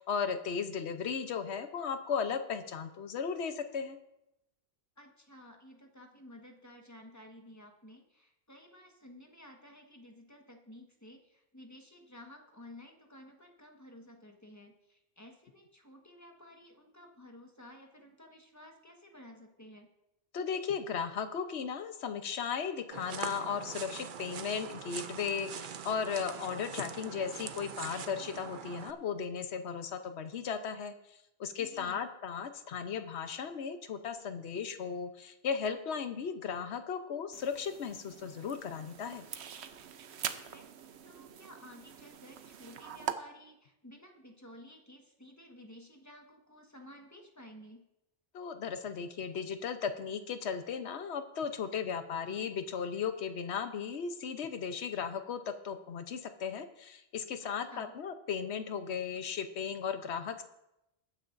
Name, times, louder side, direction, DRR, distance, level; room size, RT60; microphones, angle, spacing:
voice 1, 0.0-4.0 20.3-39.2 48.3-60.4, left 6 dB, 85° left, 8 dB, 1.1 m, -36 dB
voice 2, 5.0-19.9 31.6-32.0 40.2-40.7 41.0-47.8 57.4-57.9, left 1 dB, 15° left, 2 dB, 1.4 m, -54 dB
sound 1, 22.9-28.9, right 7 dB, 55° right, 0.7 m, -43 dB
sound 2, 37.3-43.1, right 8 dB, 85° right, 1.0 m, -43 dB
21.5 x 9.6 x 2.6 m, 0.87 s
omnidirectional pair, 1.1 m